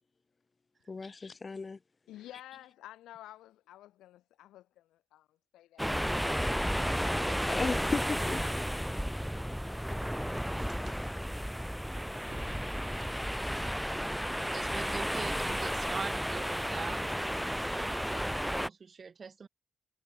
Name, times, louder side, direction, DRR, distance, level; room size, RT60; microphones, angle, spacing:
voice 1, 0.9-1.8 7.5-9.0, left 4 dB, 40° left, 5.9 m, -36 dB
voice 2, 2.1-7.0, left 14 dB, 85° left, 6.3 m, -52 dB
sound 1, 5.8-18.7, equal, ahead, 3.5 m, -33 dB
voice 3, 10.0-10.4 12.0-13.2 14.4-17.1 17.7-19.5, right 5 dB, 55° right, 5.8 m, -44 dB
supercardioid pair, 45°, 0 cm